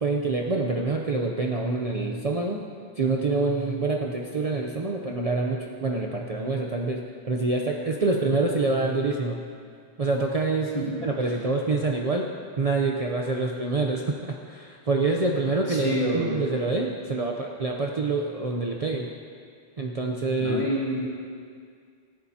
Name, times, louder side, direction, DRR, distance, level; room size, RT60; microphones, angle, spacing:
voice 1, 0.0-2.6 3.0-7.0 7.3-9.4 10.0-10.7 11.0-12.3 12.6-19.1 19.8-20.6, right 3 dB, 40° right, 0 dB, 0.8 m, -26 dB
voice 2, 10.7-11.0 15.7-16.5 20.4-21.1, equal, 30° left, -6 dB, 2.7 m, -28 dB
18.5 x 14.0 x 2.8 m, 2.1 s
omnidirectional pair, 1.1 m